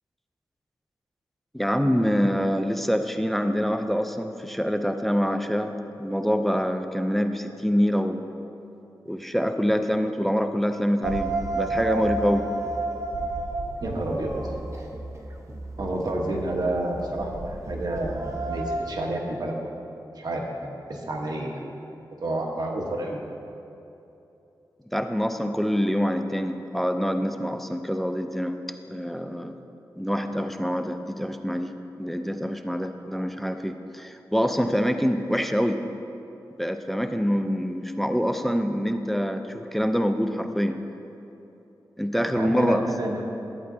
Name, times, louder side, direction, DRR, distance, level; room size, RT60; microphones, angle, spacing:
voice 1, 1.5-5.7 6.0-8.2 9.1-12.4 24.9-28.6 28.9-29.6 30.0-31.7 32.0-35.8 36.6-40.8 42.0-42.9, equal, ahead, 7 dB, 0.5 m, -25 dB
sound 1, 11.0-18.8, right 2 dB, 40° right, 0.9 m, -31 dB
voice 2, 13.8-14.3 15.8-19.7 20.2-21.6 22.2-23.2 42.3-43.3, right 1 dB, 60° right, 0 dB, 1.2 m, -29 dB
12.0 x 8.5 x 2.8 m, 2.9 s
cardioid pair, 70°, 8 cm